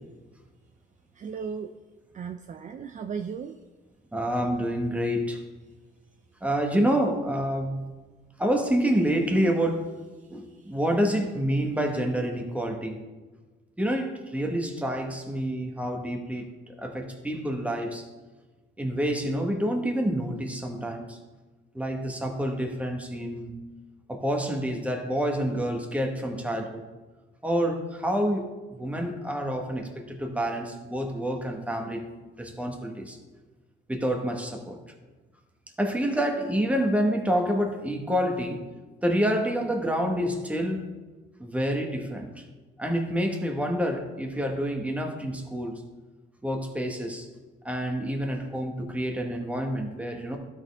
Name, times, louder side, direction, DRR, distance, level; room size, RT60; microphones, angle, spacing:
voice 1, 1.1-1.7 2.1-3.6 10.5-10.7, right 6 dB, 40° right, 6 dB, 0.4 m, -36 dB
voice 2, 4.1-5.4 6.4-7.9 8.4-9.9 10.3-13.0 13.8-18.0 18.8-21.2 21.7-23.5 24.1-26.8 27.4-32.0 32.4-33.2 33.9-34.8 35.8-38.6 39.0-40.9 41.4-42.3 42.8-45.8 46.4-47.3 47.6-50.4, equal, 5° right, 3 dB, 1.3 m, -28 dB
12.5 x 4.3 x 3.5 m, 1.3 s
cardioid pair, 90°, 20 cm